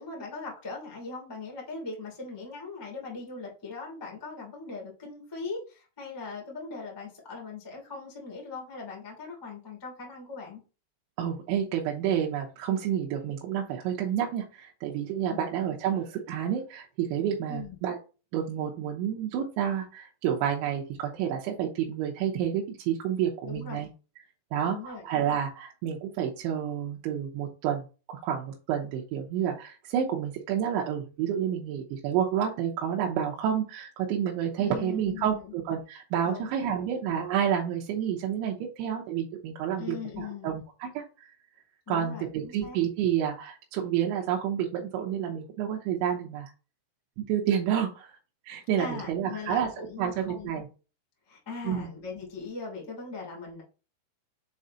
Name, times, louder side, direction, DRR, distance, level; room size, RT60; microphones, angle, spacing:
voice 1, 0.0-10.6 15.3-15.5 17.5-17.7 23.4-23.8 24.7-25.0 34.5-35.5 36.2-36.9 39.8-40.6 41.8-42.8 48.6-50.7 51.3-53.6, left 4 dB, 10° left, -2 dB, 1.1 m, -40 dB
voice 2, 11.2-18.0 18.3-23.9 24.5-41.3 41.9-46.5 47.2-48.2 48.5-50.7 51.6-51.9, right 9 dB, 80° right, -1 dB, 3.0 m, -29 dB
7.5 x 3.9 x 4.2 m, 0.34 s
omnidirectional pair, 5.8 m